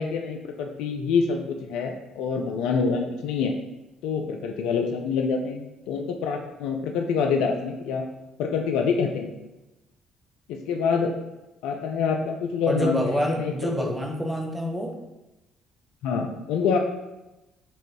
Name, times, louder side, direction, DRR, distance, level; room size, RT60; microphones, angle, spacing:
voice 1, 0.0-3.5 4.0-8.0 8.4-9.4 10.5-11.1 11.6-13.9 16.0-16.8, left 5 dB, 70° left, 3 dB, 0.3 m, -26 dB
voice 2, 12.7-14.9, equal, 10° right, 2 dB, 0.8 m, -27 dB
4.7 x 3.0 x 2.8 m, 1.0 s
hypercardioid pair, 50°, 0 cm